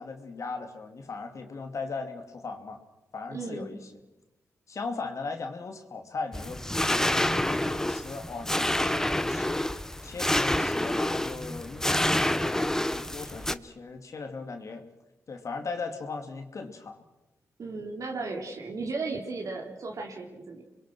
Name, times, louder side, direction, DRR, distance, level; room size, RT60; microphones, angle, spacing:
voice 1, 0.0-2.8 3.1-3.8 4.7-14.8 15.3-17.0, left 4 dB, 55° left, 4 dB, 2.9 m, -38 dB
voice 2, 3.3-3.7 17.6-20.6, right 3 dB, 65° right, 0 dB, 3.9 m, -35 dB
sound 1, 6.3-13.5, left 1 dB, 10° left, 1.1 m, -28 dB
28.0 x 22.5 x 6.3 m, 0.98 s
cardioid pair, 60°, 6 cm